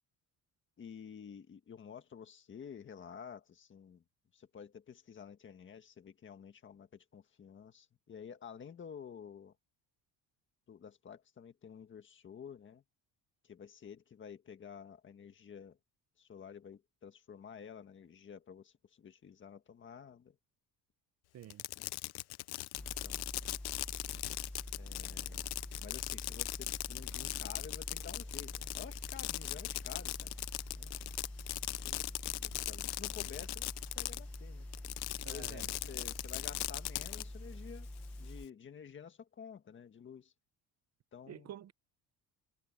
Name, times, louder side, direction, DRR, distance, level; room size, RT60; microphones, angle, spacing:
voice 1, 0.8-4.0 4.3-9.5 10.7-12.8 13.4-15.8 16.2-20.4 21.7-21.9 22.8-23.2 24.8-25.5 25.8-30.4 30.8-31.0 31.8-34.7 35.3-37.9 38.2-40.3 41.1-41.5, left 7 dB, 30° left, 1.7 m, -51 dB
Fireworks, 21.4-34.4 34.7-37.2, left 20 dB, 85° left, 0.6 m, -39 dB
sound 1, 22.8-38.5, left 1 dB, 5° left, 1.1 m, -46 dB
voice 2, 35.2-35.7 41.3-41.7, right 11 dB, 45° right, 0.8 m, -48 dB
cardioid pair, 175°, 38 cm